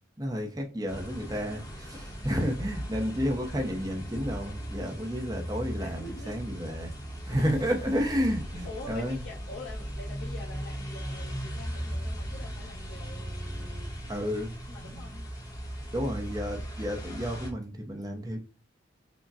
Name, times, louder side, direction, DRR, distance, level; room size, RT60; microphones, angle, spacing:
voice 1, 0.2-6.9 7.3-9.2 14.1-15.1 15.9-18.4, equal, 20° right, 0.7 m, -31 dB
sound 1, 0.9-17.5, equal, 20° left, 0.8 m, -38 dB
voice 2, 5.8-6.4 7.2-7.4 8.6-13.9 14.7-15.2, left 2 dB, 75° left, 1.0 m, -45 dB
sound 2, 7.2-11.7, left 1 dB, 50° left, 0.7 m, -46 dB
5.1 x 2.2 x 2.4 m
head